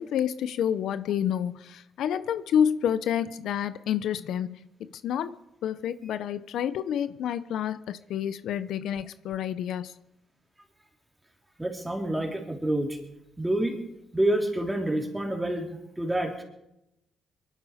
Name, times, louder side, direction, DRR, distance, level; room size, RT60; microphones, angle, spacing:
voice 1, 0.0-4.6 5.0-5.3 5.6-9.9, left 9 dB, 75° left, 14 dB, 0.6 m, -29 dB
voice 2, 11.6-13.0 13.4-13.7 14.1-16.4, right 1 dB, 5° right, 2 dB, 3.4 m, -28 dB
22.0 x 12.0 x 5.0 m, 0.85 s
cardioid pair, 90°, 0 cm